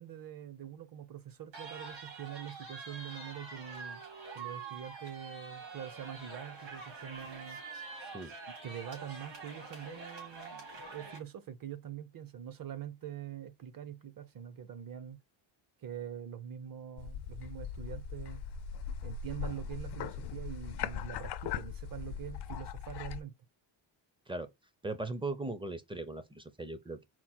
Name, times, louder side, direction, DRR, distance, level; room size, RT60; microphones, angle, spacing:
voice 1, 0.0-4.0 4.3-7.6 8.6-15.2 15.8-18.5 19.0-23.3, right 9 dB, 45° right, 0.7 m, -44 dB
sound 1, 1.5-11.2, right 4 dB, 70° right, 2.5 m, -46 dB
sound 2, 17.0-23.2, left 7 dB, 60° left, 0.5 m, -40 dB
voice 2, 24.8-27.0, right 2 dB, 10° right, 0.5 m, -38 dB
4.4 x 2.1 x 4.3 m
cardioid pair, 110°, 47 cm